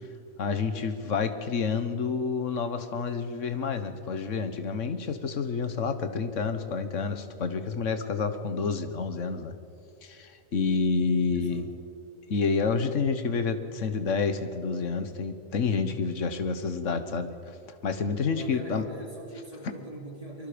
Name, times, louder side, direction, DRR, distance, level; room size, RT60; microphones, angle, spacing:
voice 1, 0.4-9.5 10.0-11.7 12.3-17.6 17.8-18.8, left 5 dB, 70° left, 9 dB, 1.6 m, -29 dB
voice 2, 11.3-11.6 18.3-20.5, right 1 dB, 30° right, -1 dB, 3.5 m, -41 dB
24.0 x 23.5 x 5.1 m, 2.5 s
omnidirectional pair, 1.3 m